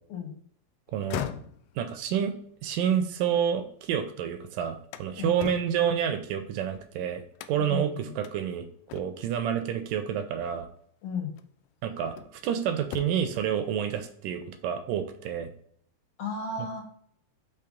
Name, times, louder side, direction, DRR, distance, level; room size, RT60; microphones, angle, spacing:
sound 1, 0.9-4.0 4.4-6.8 7.4-7.8 8.2-8.4 8.9-9.4 10.6-10.8 11.4-12.5 12.8-13.4, left 12 dB, 85° left, 2.3 m, -41 dB
voice 1, 0.9-1.3 1.8-2.3 2.6-7.2 7.5-8.7 8.9-10.7 11.8-12.2 12.4-15.5, right 8 dB, 80° right, 9 dB, 2.1 m, -28 dB
voice 2, 5.2-5.5 7.6-8.1 11.0-11.4 16.2-16.8, left 5 dB, 70° left, 3 dB, 2.4 m, -34 dB
5.8 x 3.4 x 5.1 m, 0.64 s
omnidirectional pair, 4.0 m